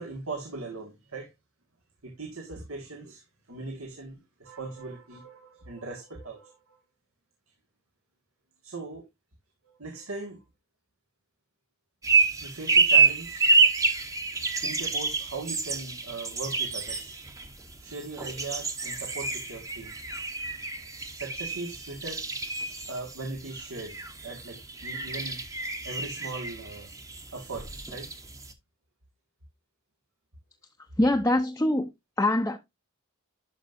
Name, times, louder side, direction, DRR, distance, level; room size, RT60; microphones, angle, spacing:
voice 1, 0.0-1.3 2.0-6.8 8.6-9.1 9.6-10.4 12.4-13.7 14.6-17.3 17.8-20.0 21.1-22.2 22.6-25.4 25.8-26.9 27.3-28.1, right 3 dB, 75° right, 1.8 m, -39 dB
sound 1, 12.0-28.5, right 4 dB, 15° right, 1.0 m, -28 dB
voice 2, 31.0-31.9 32.2-32.6, left 1 dB, 15° left, 0.7 m, -23 dB
12.0 x 5.3 x 2.6 m
head